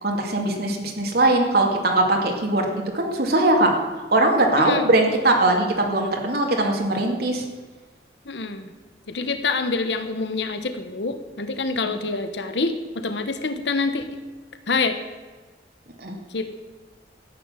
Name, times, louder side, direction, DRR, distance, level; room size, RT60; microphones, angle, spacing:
voice 1, 0.0-3.7 4.1-7.4 16.0-16.2, right 2 dB, 60° right, 1 dB, 2.3 m, -20 dB
voice 2, 8.3-8.7 9.1-14.1 14.7-15.0 16.3-16.6, left 3 dB, 75° left, 9 dB, 1.1 m, -26 dB
13.5 x 9.7 x 7.5 m, 1.3 s
head